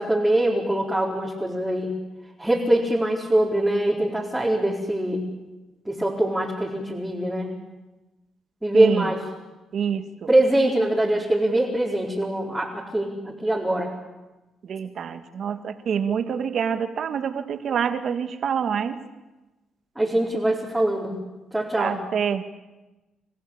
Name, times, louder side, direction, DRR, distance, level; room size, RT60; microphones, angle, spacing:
voice 1, 0.0-1.9 2.4-5.3 5.9-7.5 8.6-9.2 10.3-13.9 20.0-21.2 21.5-22.0, right 1 dB, 5° right, -5 dB, 4.4 m, -23 dB
voice 2, 8.7-9.1 9.7-10.1 14.6-19.0 21.8-22.4, right 7 dB, 60° right, 8 dB, 2.0 m, -26 dB
28.0 x 15.5 x 8.9 m, 1.1 s
cardioid pair, 90°, 0 cm